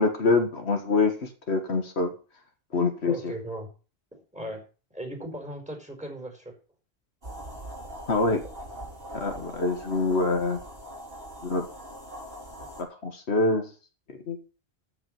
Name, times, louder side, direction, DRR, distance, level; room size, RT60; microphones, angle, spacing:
voice 1, 0.0-2.1 2.7-3.1 8.1-8.4 9.1-10.6 11.4-11.7 12.8-13.7 14.3-14.4, left 3 dB, 80° left, 5 dB, 1.9 m, -25 dB
voice 2, 3.0-3.7 4.1-4.7 4.9-6.5 8.4-8.5, right 1 dB, 5° right, 2 dB, 4.9 m, -37 dB
sound 1, 7.2-12.8, equal, 65° right, 4.5 m, -41 dB
13.5 x 6.1 x 7.7 m, 0.36 s
omnidirectional pair, 1.1 m